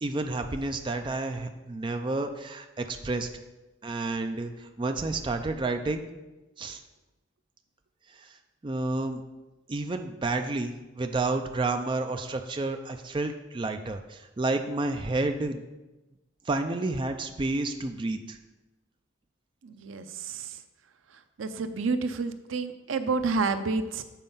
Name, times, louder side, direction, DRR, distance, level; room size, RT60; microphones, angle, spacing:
voice 1, 0.0-3.3 3.8-6.1 6.6-6.8 8.2-8.3 8.6-9.2 9.7-15.6 16.5-18.4, right 2 dB, 25° right, 6 dB, 0.4 m, -30 dB
voice 2, 19.6-20.5 21.4-24.0, right 4 dB, 85° right, 10 dB, 0.5 m, -29 dB
7.4 x 4.4 x 5.5 m, 1.1 s
head